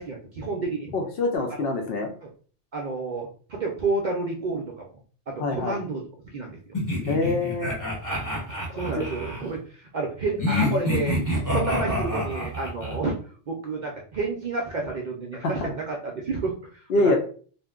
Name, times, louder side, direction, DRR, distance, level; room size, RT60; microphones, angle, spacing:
voice 1, 0.0-0.9 2.2-2.3 2.7-4.8 5.3-6.0 6.3-6.6 8.3-8.5 8.7-13.2 13.5-17.2, right 3 dB, 60° right, 0 dB, 0.5 m, -30 dB
voice 2, 0.9-2.1 5.4-5.8 7.1-7.7 8.7-9.0 15.4-15.7 16.9-17.2, left 2 dB, 60° left, 4 dB, 0.7 m, -25 dB
sound 1, 6.7-9.4 10.4-13.0, left 1 dB, 20° left, 0.9 m, -27 dB
2.6 x 2.1 x 3.5 m, 0.43 s
omnidirectional pair, 1.2 m